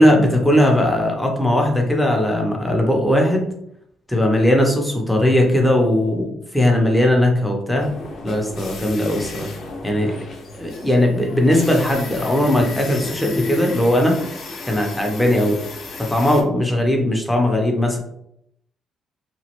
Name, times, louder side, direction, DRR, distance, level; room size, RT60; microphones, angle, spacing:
voice 1, 0.0-3.5 4.1-7.9 8.2-9.5 9.8-10.2 10.6-14.2 14.6-15.6 16.0-18.0, left 1 dB, 10° left, 1 dB, 0.8 m, -18 dB
sound 1, 7.8-16.4, left 3 dB, 70° left, 0.7 m, -33 dB
3.0 x 2.3 x 2.9 m, 0.73 s
cardioid pair, 90°, 0 cm